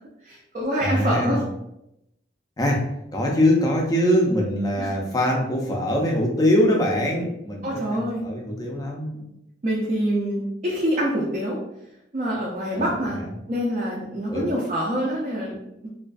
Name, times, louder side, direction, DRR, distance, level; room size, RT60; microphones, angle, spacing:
voice 1, 0.2-1.4 4.8-5.0 7.6-8.2 9.6-11.6 12.1-13.2 13.5-15.9, equal, 40° right, -5 dB, 0.4 m, -26 dB
voice 2, 0.8-1.4 2.6-2.8 3.1-7.7 7.9-9.2 12.7-13.3 14.3-14.5, left 1 dB, 20° left, -1 dB, 0.4 m, -23 dB
2.4 x 2.2 x 2.4 m, 0.84 s
head